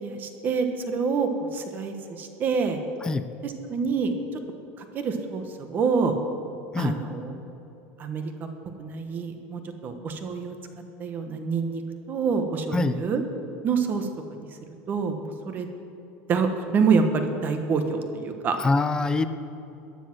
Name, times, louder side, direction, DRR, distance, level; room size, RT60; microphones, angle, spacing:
voice 1, 0.0-2.8 3.4-4.1 4.8-6.2 6.8-7.3 8.0-8.5 8.8-10.5 11.0-11.8 12.1-13.2 13.6-14.5 14.9-15.7 16.3-18.6, right 5 dB, 30° right, 6 dB, 1.3 m, -27 dB
voice 2, 18.6-19.2, left 3 dB, 10° left, 11 dB, 0.6 m, -24 dB
15.0 x 10.0 x 6.0 m, 3.0 s
supercardioid pair, 145°, 6 cm